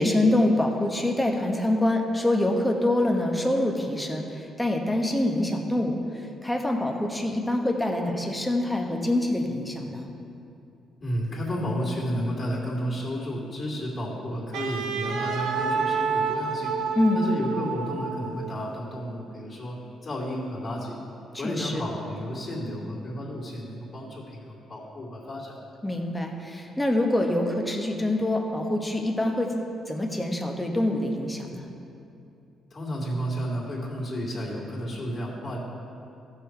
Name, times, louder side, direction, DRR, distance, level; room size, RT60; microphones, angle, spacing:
voice 1, 0.0-10.1 16.9-17.3 21.3-21.8 25.8-29.5 29.9-31.7, left 1 dB, 10° left, 1 dB, 1.1 m, -25 dB
voice 2, 11.0-16.8 17.1-21.0 21.4-25.6 32.7-35.6, equal, 35° left, -4 dB, 2.5 m, -32 dB
Wind instrument woodwind instrument, 14.5-18.6, right 5 dB, 85° right, 0.8 m, -29 dB
14.5 x 5.8 x 4.6 m, 2.7 s
cardioid pair, 90°, 0 cm